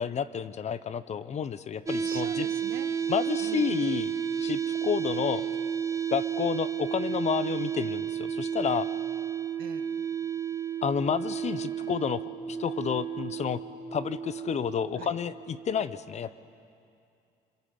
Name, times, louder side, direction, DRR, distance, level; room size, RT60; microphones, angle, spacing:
voice 1, 0.0-2.5 3.1-4.1 4.4-5.4 6.1-8.9 10.8-13.6 13.9-16.4, left 7 dB, 40° left, 15 dB, 0.8 m, -30 dB
sound 1, 1.9-15.8, right 8 dB, 20° right, 0.8 m, -32 dB
voice 2, 2.0-3.0 3.4-3.8 9.6-9.9 15.0-15.1, right 9 dB, 60° right, 10 dB, 1.3 m, -43 dB
25.5 x 22.0 x 7.8 m, 2.5 s
cardioid pair, 110°, 17 cm